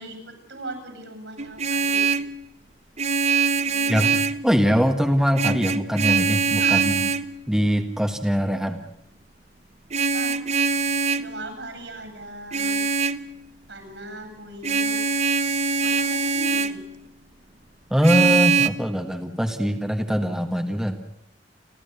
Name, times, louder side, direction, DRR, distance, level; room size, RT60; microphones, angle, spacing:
voice 1, 0.0-2.0 3.7-4.1 6.6-6.8 10.1-10.4 11.1-12.9 13.7-15.0 15.8-16.8, right 2 dB, 70° right, 7 dB, 7.8 m, -38 dB
Vehicle horn car horn honking, 1.4-2.3 3.0-4.5 5.3-7.3 9.9-11.3 12.5-13.2 14.6-16.8 18.0-18.7, right 5 dB, 40° right, 0.9 m, -22 dB
voice 2, 4.4-7.1 7.5-8.8 17.9-21.0, equal, 5° right, 5 dB, 1.5 m, -22 dB
30.0 x 14.0 x 8.2 m, 0.76 s
head